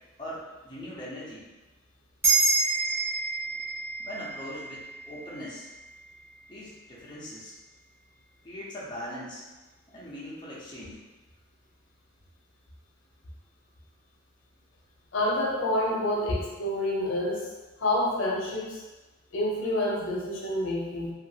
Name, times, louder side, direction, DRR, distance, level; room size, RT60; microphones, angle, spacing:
voice 1, 0.2-1.5 3.5-3.6 4.0-5.7 6.5-7.5 8.4-9.4 9.9-11.0 16.3-16.4, equal, 25° left, -8 dB, 0.7 m, -39 dB
sound 1, 2.2-6.9, right 3 dB, 15° right, 0.7 m, -29 dB
voice 2, 15.1-17.5 17.8-18.8 19.3-21.1, left 1 dB, 90° left, -3 dB, 0.7 m, -28 dB
2.8 x 2.5 x 2.7 m, 1.2 s
head